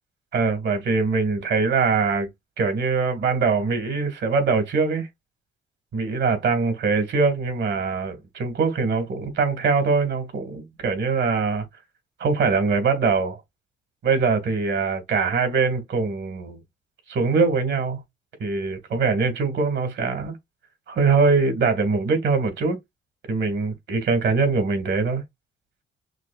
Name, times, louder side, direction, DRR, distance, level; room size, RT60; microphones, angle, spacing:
voice 1, 0.3-2.3 2.6-5.1 5.9-11.7 12.2-13.4 14.0-16.6 17.1-18.0 18.4-20.4 20.9-22.8 23.3-25.2, right 4 dB, 65° right, 1.9 m, -22 dB
6.1 x 2.6 x 2.4 m
cardioid pair, 90°, 20 cm